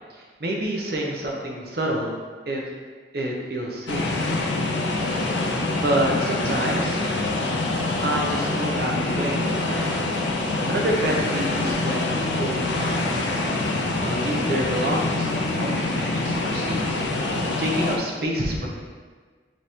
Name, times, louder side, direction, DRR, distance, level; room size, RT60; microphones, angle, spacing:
voice 1, 0.1-2.1 2.5-2.6 3.1-4.1 5.8-7.0 8.0-9.9 10.7-13.2 14.0-17.0 17.6-18.7, right 1 dB, 55° right, -1 dB, 0.7 m, -28 dB
sound 1, 3.9-18.0, left 2 dB, 80° left, 0.5 m, -25 dB
5.0 x 3.0 x 2.8 m, 1.5 s
head